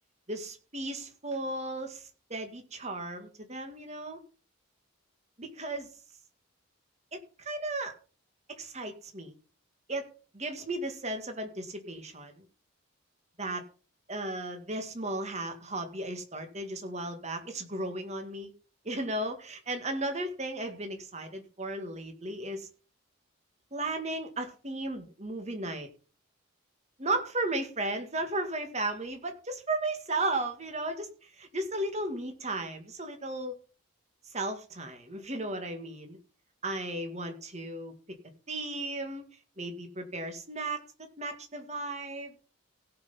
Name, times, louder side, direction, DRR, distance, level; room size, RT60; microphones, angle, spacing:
voice 1, 0.3-4.2 5.4-5.9 7.1-7.9 8.5-9.3 9.9-10.1 10.3-12.4 13.4-13.6 14.1-18.5 18.8-22.7 23.7-25.9 27.0-33.6 34.3-36.2 36.6-37.9 38.5-39.2 39.6-40.8 41.2-42.5, right 2 dB, 30° right, 6 dB, 1.9 m, -35 dB
16.5 x 5.8 x 5.6 m, 0.37 s
head